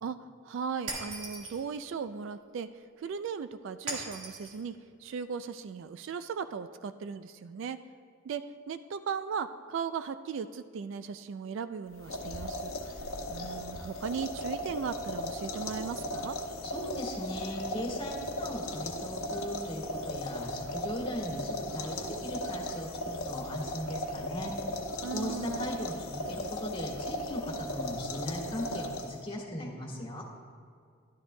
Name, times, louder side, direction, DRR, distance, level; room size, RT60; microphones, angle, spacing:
voice 1, 0.4-2.7 3.0-4.7 5.0-7.8 8.2-12.7 13.3-16.4 25.0-25.7, right 6 dB, 60° right, 12 dB, 0.3 m, -37 dB
Shatter, 0.9-1.6 3.9-4.6, right 2 dB, 85° right, 1.7 m, -38 dB
sound 1, 11.9-29.3, left 1 dB, 75° left, 0.9 m, -37 dB
voice 2, 16.6-24.5 25.1-30.2, equal, 25° left, -3 dB, 1.6 m, -38 dB
12.5 x 11.5 x 2.2 m, 2.2 s
head